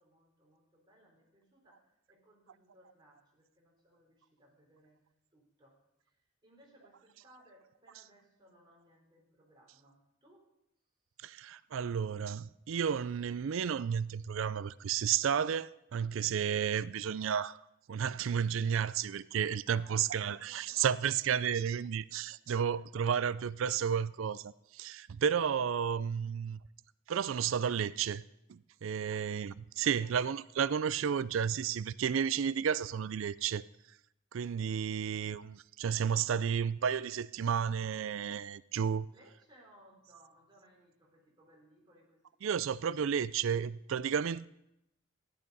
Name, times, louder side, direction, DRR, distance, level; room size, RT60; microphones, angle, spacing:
voice 1, 0.0-5.1 5.3-6.1 6.4-10.4 19.7-20.9 22.6-23.1 26.2-26.3 29.1-29.3 29.8-30.3 39.1-43.0, right 1 dB, 20° right, 3.5 m, -63 dB
voice 2, 11.2-17.6 17.9-26.6 27.1-28.2 28.5-33.6 34.3-39.1 42.4-44.4, right 7 dB, 70° right, 0.4 m, -32 dB
14.0 x 10.5 x 5.4 m
head